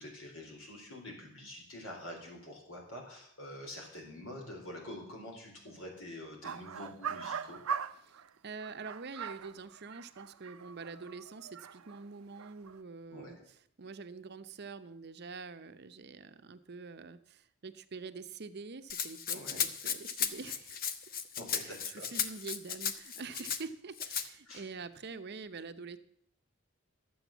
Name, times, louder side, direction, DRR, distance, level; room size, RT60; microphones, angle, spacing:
voice 1, 0.0-7.6 13.1-13.5 19.3-19.6 21.4-22.1 24.4-24.6, left 1 dB, 80° left, 0 dB, 3.9 m, -46 dB
sound 1, 6.4-8.3 8.6-12.0 12.4-12.8, right 7 dB, 90° right, 0.6 m, -41 dB
voice 2, 8.0-20.9 21.5-26.0, right 4 dB, 50° right, 11 dB, 0.7 m, -46 dB
Rattle (instrument), 18.9-23.6 24.0-24.3, left 7 dB, 45° left, 0.7 m, -35 dB
11.5 x 7.9 x 7.1 m, 0.70 s
head